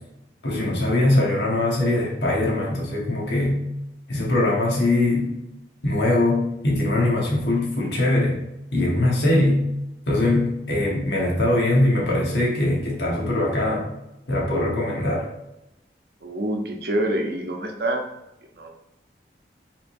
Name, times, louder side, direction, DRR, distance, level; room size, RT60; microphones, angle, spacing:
voice 1, 0.4-3.6 4.1-5.3 5.8-8.4 8.7-9.7 10.1-13.9 14.3-15.3, left 1 dB, 80° left, -3 dB, 1.4 m, -21 dB
voice 2, 16.2-18.0 18.6-18.7, right 1 dB, 60° right, 2 dB, 0.7 m, -26 dB
5.4 x 3.7 x 2.6 m, 0.89 s
head